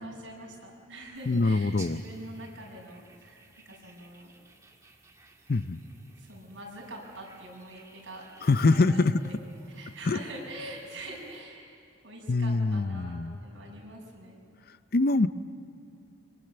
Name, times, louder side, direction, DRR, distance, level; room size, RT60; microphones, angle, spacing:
voice 1, 0.0-4.3 6.2-8.2 8.7-9.4 9.7-11.8 12.0-14.4, right 1 dB, 70° right, -2 dB, 6.4 m, -44 dB
sound 1, 1.1-11.4, right 3 dB, 15° right, 1.8 m, -56 dB
voice 2, 1.3-2.0 5.5-5.8 8.4-9.1 10.1-10.2 12.3-13.4 14.7-15.3, left 3 dB, 50° left, 13 dB, 0.5 m, -24 dB
25.0 x 24.5 x 6.9 m, 2.6 s
head